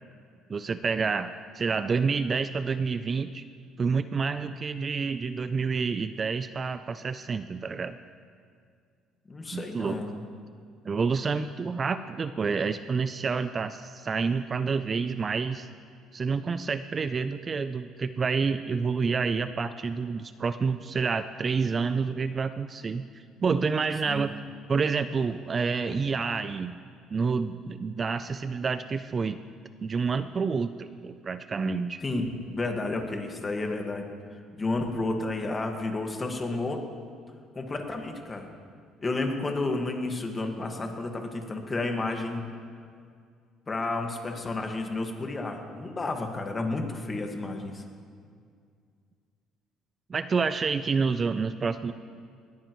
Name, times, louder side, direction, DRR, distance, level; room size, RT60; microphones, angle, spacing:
voice 1, 0.5-3.4 3.8-8.0 9.5-10.0 10.8-15.7 16.1-24.3 24.7-26.8 27.1-29.4 29.8-32.0 50.1-51.9, right 5 dB, 30° right, 11 dB, 0.4 m, -28 dB
voice 2, 9.3-10.2 24.1-24.3 25.9-26.0 32.0-34.1 34.5-36.8 37.5-38.5 39.0-42.4 43.7-47.8, left 2 dB, 25° left, 3 dB, 1.7 m, -31 dB
20.0 x 14.0 x 3.1 m, 2.2 s
cardioid pair, 110°, 0 cm